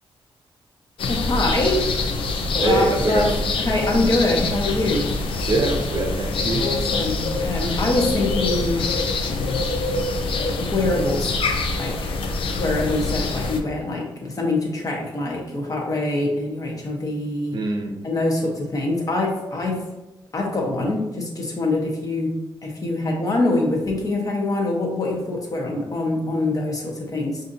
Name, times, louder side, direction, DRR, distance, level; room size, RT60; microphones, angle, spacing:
sound 1, 1.0-13.6, left 3 dB, 75° left, 0.4 m, -25 dB
voice 1, 1.1-1.8 2.5-5.1 6.6-8.9 10.6-11.4 11.8-12.0 12.5-17.6 18.0-19.9 20.3-27.4, left 2 dB, 40° left, 0 dB, 0.8 m, -24 dB
voice 2, 2.6-3.3 5.5-6.6 17.5-17.9, right 2 dB, 50° right, 2 dB, 0.6 m, -23 dB
4.7 x 2.6 x 2.6 m, 0.98 s
cardioid pair, 105°, 9 cm